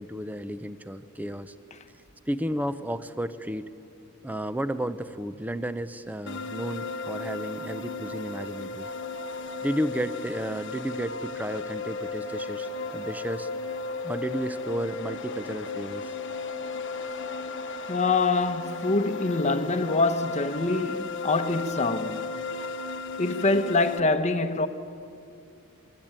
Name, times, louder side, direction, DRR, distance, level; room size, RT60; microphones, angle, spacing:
voice 1, 0.0-1.5 2.3-3.7 4.2-8.9 9.6-13.5 14.0-16.1, equal, 5° right, 0.7 m, -32 dB
sound 1, 6.3-24.0, left 3 dB, 60° left, 1.1 m, -35 dB
voice 2, 17.9-22.3 23.2-24.7, left 3 dB, 30° left, 1.0 m, -25 dB
26.0 x 22.5 x 8.9 m
head